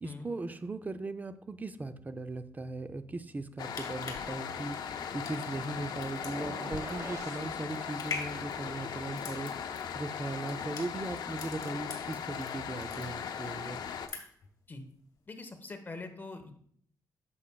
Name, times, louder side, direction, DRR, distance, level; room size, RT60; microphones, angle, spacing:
voice 1, 0.0-13.8, right 2 dB, 25° right, 11 dB, 0.5 m, -39 dB
sound 1, 3.5-12.5 12.8-13.5 13.8-14.5 14.9-15.0, left 4 dB, 60° left, 1.8 m, -43 dB
sound 2, 3.6-14.1, left 7 dB, 80° left, 0.5 m, -38 dB
sound 3, 6.2-7.5, right 2 dB, 50° right, 1.3 m, -43 dB
voice 2, 15.3-16.5, left 3 dB, 30° left, 5 dB, 1.0 m, -43 dB
10.0 x 7.0 x 2.3 m, 0.63 s
cardioid pair, 105°, 7 cm